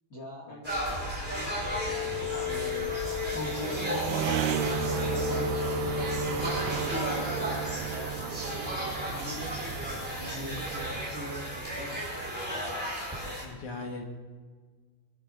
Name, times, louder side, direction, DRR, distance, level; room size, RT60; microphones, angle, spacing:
voice 1, 0.1-1.7 2.5-3.0 3.3-7.0 7.4-9.6 10.4-12.1, equal, 35° left, -1 dB, 1.4 m, -43 dB
sound 1, 0.6-13.4, equal, 5° right, 4.1 m, -34 dB
sound 2, 1.1-12.6, right 10 dB, 80° right, 2.0 m, -35 dB
sound 3, 1.8-7.3, left 17 dB, 85° left, 3.1 m, -35 dB
voice 2, 10.2-10.5 13.4-14.0, left 3 dB, 55° left, 1 dB, 2.9 m, -40 dB
23.5 x 10.5 x 4.0 m, 1.5 s
omnidirectional pair, 4.3 m